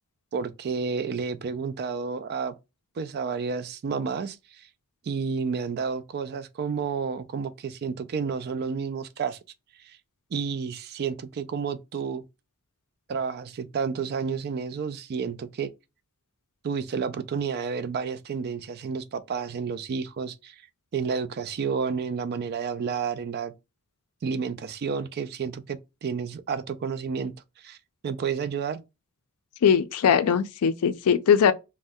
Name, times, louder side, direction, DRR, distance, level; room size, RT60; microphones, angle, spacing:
voice 1, 0.3-2.6 3.0-4.7 5.0-9.4 9.8-10.0 10.3-12.2 13.1-15.7 16.6-20.6 20.9-23.5 24.2-27.3 27.6-27.8 28.0-28.8, right 5 dB, 45° right, 0.3 m, -30 dB
voice 2, 29.6-31.5, left 7 dB, 75° left, 0.4 m, -20 dB
2.6 x 2.1 x 3.4 m
head